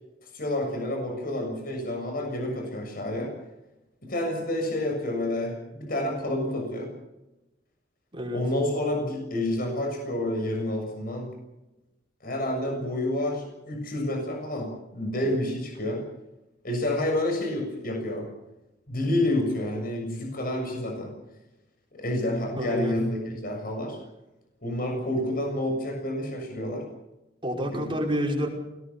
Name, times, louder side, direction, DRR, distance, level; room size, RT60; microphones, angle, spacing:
voice 1, 0.3-3.3 4.0-6.9 8.3-11.3 12.2-16.0 16.6-18.3 18.9-21.1 21.9-24.0 24.6-26.8 27.7-27.8, left 1 dB, 50° left, 3 dB, 6.9 m, -29 dB
voice 2, 22.6-23.0 27.4-28.5, equal, 30° right, 0 dB, 5.4 m, -28 dB
23.5 x 18.5 x 7.1 m, 0.97 s
head